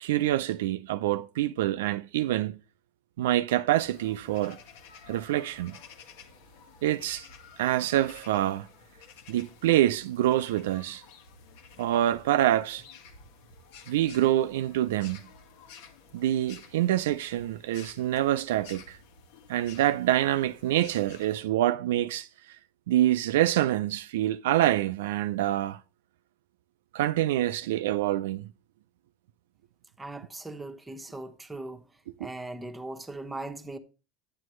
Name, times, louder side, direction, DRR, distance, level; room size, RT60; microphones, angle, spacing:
voice 1, 0.0-2.6 3.2-4.6 5.1-5.8 6.8-7.2 7.6-8.7 9.3-11.0 11.8-12.8 13.9-15.2 16.1-19.0 19.5-22.3 22.9-25.8 26.9-28.5 32.2-32.3, right 13 dB, 85° right, 0.4 m, -26 dB
sound 1, 3.7-21.4, left 5 dB, 75° left, 1.7 m, -52 dB
voice 2, 30.0-31.9 32.2-33.8, right 2 dB, 10° right, 1.0 m, -39 dB
10.5 x 7.8 x 3.1 m
supercardioid pair, 110°, 0 cm